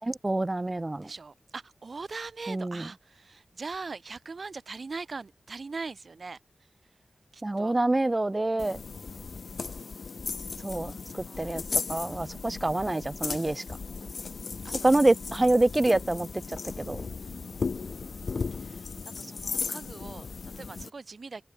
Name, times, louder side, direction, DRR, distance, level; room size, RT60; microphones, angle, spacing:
voice 1, 0.0-1.1 2.5-2.9 7.4-8.8 10.6-11.6 11.9-13.6 14.8-17.1, right 2 dB, 25° right, 0.5 m, -26 dB
voice 2, 1.0-6.4 7.3-7.7 10.9-11.6 14.0-15.1 17.2-18.1 18.5-18.9 19.2-21.5, right 4 dB, 60° right, 3.7 m, -42 dB
sound 1, 8.6-20.9, left 4 dB, 75° left, 0.4 m, -36 dB
wide cardioid pair, 75°, 0 cm